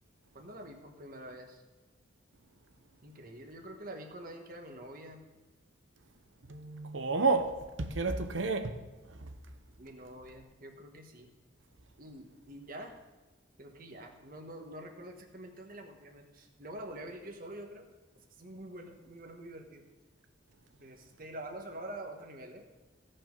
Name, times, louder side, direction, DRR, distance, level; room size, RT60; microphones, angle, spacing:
voice 1, 0.3-1.6 3.0-5.2 9.8-11.3 12.0-13.0 13.6-17.9 18.1-19.8 20.7-22.7, right 1 dB, 50° right, 1.3 m, -46 dB
voice 2, 6.5-8.8 9.2-9.3, right 3 dB, 75° right, 0.9 m, -31 dB
16.0 x 5.6 x 5.3 m
head